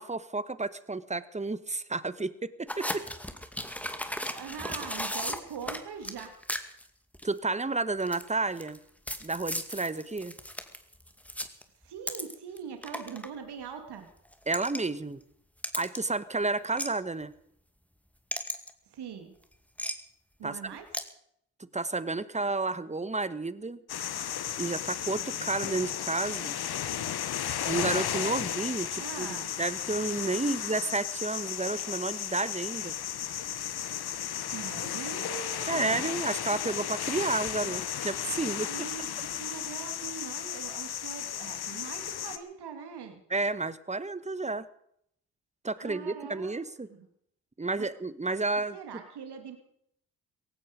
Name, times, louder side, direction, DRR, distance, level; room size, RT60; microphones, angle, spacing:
voice 1, 0.0-3.1 7.2-8.8 9.2-10.3 14.5-15.2 15.8-17.3 20.4-20.6 21.7-23.8 24.6-26.6 27.7-32.9 35.7-38.7 43.3-44.7 45.6-46.9 47.6-48.8, right 3 dB, 15° right, 15 dB, 1.3 m, -31 dB
sound 1, 2.7-6.9 7.1-7.4 8.0-8.8 9.1-12.6 12.8-13.3 14.3-14.8 15.6-16.0 16.8-16.9 18.3-18.7 19.8-19.9 20.9-21.0, equal, 5° left, 2.3 m, -35 dB
voice 2, 4.3-6.4 11.8-14.1 18.9-19.4 20.4-20.9 29.0-29.5 30.4-30.6 34.3-36.0 36.5-36.9 38.7-43.2 45.8-46.6 46.9-47.0 47.8-47.9 48.7-49.6, right 7 dB, 65° right, 6 dB, 2.6 m, -42 dB
sound 2, 23.9-42.4, left 10 dB, 65° left, 1.4 m, -34 dB
17.5 x 16.0 x 5.2 m, 0.70 s
supercardioid pair, 50°, 42 cm